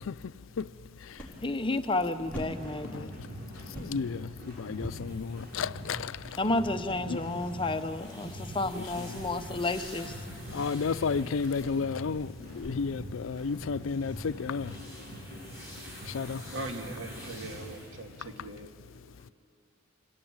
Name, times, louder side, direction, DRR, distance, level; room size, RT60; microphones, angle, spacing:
sound 1, 0.7-14.3, equal, 5° left, 4.2 m, -49 dB
voice 1, 1.4-3.2 6.4-10.1, left 2 dB, 25° left, 0.8 m, -31 dB
sound 2, 2.2-17.7, equal, 50° right, 5.8 m, -44 dB
voice 2, 3.7-6.2 7.1-7.2 8.8-8.9 10.5-14.7 16.1-16.4, left 5 dB, 85° left, 0.5 m, -32 dB
sound 3, 5.1-6.6 7.0-12.5 13.5-17.9, left 1 dB, 15° right, 6.4 m, -51 dB
voice 3, 16.5-18.7, right 2 dB, 70° right, 2.1 m, -40 dB
26.5 x 16.5 x 8.8 m
head